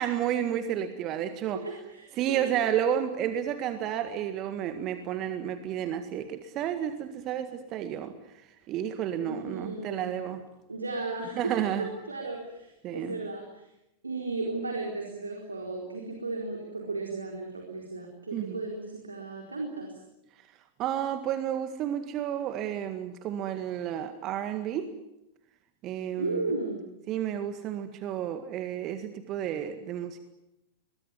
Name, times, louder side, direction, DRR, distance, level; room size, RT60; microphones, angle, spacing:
voice 1, 0.0-1.6 2.2-8.1 8.7-10.4 11.4-11.9 12.8-13.2 18.3-18.6 20.8-24.9 25.8-26.4 27.1-30.2, right 10 dB, 35° right, 9 dB, 1.9 m, -31 dB
voice 2, 1.5-2.4 9.2-10.2 10.7-13.6 14.0-20.0 26.2-26.8, right 3 dB, 80° right, 1 dB, 4.3 m, -35 dB
23.0 x 21.5 x 9.7 m, 0.87 s
figure-of-eight pair, 90°, 0 cm